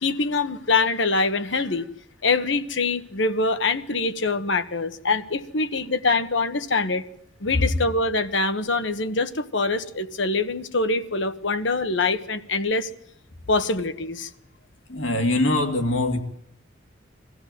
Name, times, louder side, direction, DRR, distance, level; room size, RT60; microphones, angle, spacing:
voice 1, 0.0-1.9 2.2-7.1 7.4-12.9 13.5-14.3, left 3 dB, 70° left, 1.2 m, -24 dB
voice 2, 14.9-16.2, left 2 dB, 85° left, 2.5 m, -22 dB
22.0 x 15.0 x 9.2 m
head